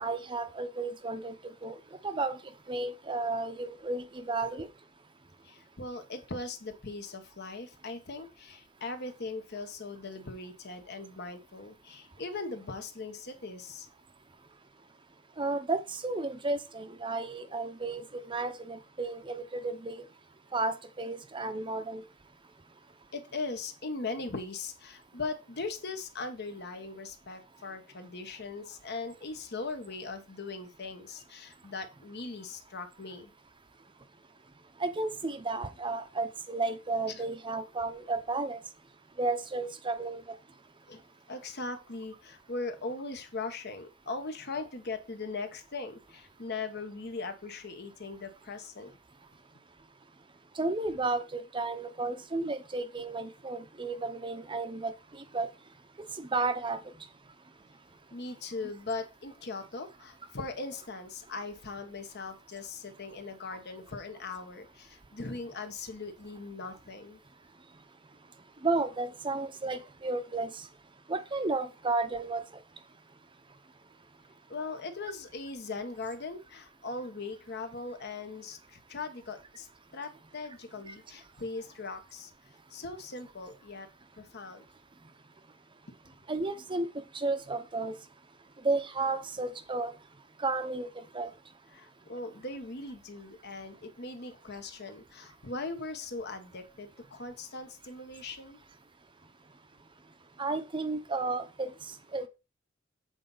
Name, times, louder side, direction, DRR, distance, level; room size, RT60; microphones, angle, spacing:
voice 1, 0.0-1.3 1.6-1.7 2.0-2.3 2.7-4.7 15.4-18.0 18.3-20.0 20.5-22.0 34.8-38.6 39.2-40.2 50.6-54.9 55.3-55.5 56.3-56.8 68.6-70.5 71.1-72.4 86.3-86.9 87.2-87.9 88.6-89.9 90.4-90.9 91.1-91.3 100.4-101.7 102.1-102.3, right 3 dB, 25° right, 0.7 m, -32 dB
voice 2, 5.4-13.9 23.1-33.3 37.1-37.2 40.9-41.0 41.3-49.0 58.1-67.2 74.5-79.7 79.9-82.3 82.7-83.9 84.2-84.6 91.7-98.6, left 3 dB, 55° left, 1.2 m, -40 dB
7.9 x 4.0 x 5.5 m
head